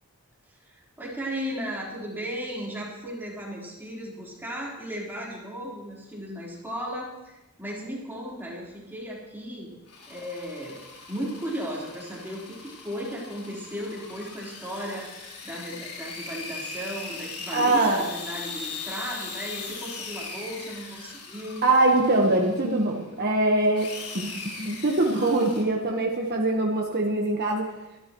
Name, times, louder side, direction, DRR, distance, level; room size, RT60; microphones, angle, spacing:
voice 1, 0.6-9.7 10.1-10.8 11.1-15.0 15.4-21.6, equal, 10° right, -5 dB, 3.9 m, -35 dB
sound 1, 9.9-23.0 23.8-25.6, left 4 dB, 85° left, 3.6 m, -40 dB
voice 2, 17.5-18.0 21.6-24.3 24.6-27.7, right 2 dB, 45° right, 0 dB, 1.3 m, -23 dB
24.0 x 12.5 x 3.1 m, 1.0 s
head